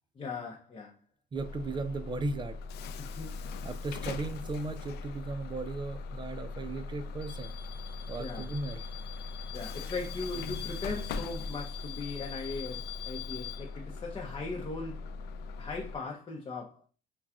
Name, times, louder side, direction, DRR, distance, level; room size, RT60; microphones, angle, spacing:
voice 1, 0.1-1.0 3.0-3.5 8.2-8.4 9.5-15.2 15.6-16.9, left 3 dB, 30° left, 0.7 m, -39 dB
Bus / Alarm, 1.3-15.9, left 4 dB, 80° left, 0.4 m, -40 dB
voice 2, 1.3-2.6 3.6-7.5 8.1-8.9, right 3 dB, 25° right, 0.5 m, -36 dB
5.5 x 2.3 x 2.4 m
cardioid pair, 110°, 17 cm